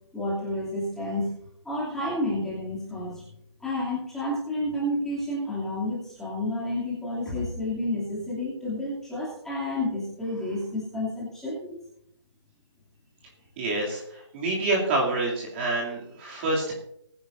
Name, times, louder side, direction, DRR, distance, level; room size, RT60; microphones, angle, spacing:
voice 1, 0.1-1.3 1.6-3.2 3.6-11.8, left 1 dB, 5° left, -8 dB, 2.7 m, -30 dB
voice 2, 13.6-16.7, right 2 dB, 25° right, -3 dB, 2.7 m, -27 dB
20.5 x 10.5 x 2.6 m, 0.73 s
hypercardioid pair, 160°, 16 cm